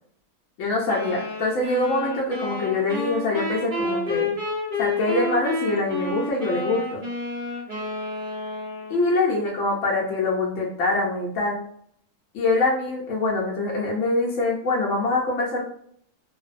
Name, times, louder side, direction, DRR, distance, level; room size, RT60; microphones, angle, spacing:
voice 1, 0.6-4.3 4.8-7.0 8.9-11.6 12.3-15.6, left 2 dB, 65° left, -4 dB, 0.8 m, -24 dB
sound 1, 0.9-9.2, left 2 dB, 40° right, 0.8 m, -30 dB
2.5 x 2.0 x 2.4 m, 0.64 s
omnidirectional pair, 1.6 m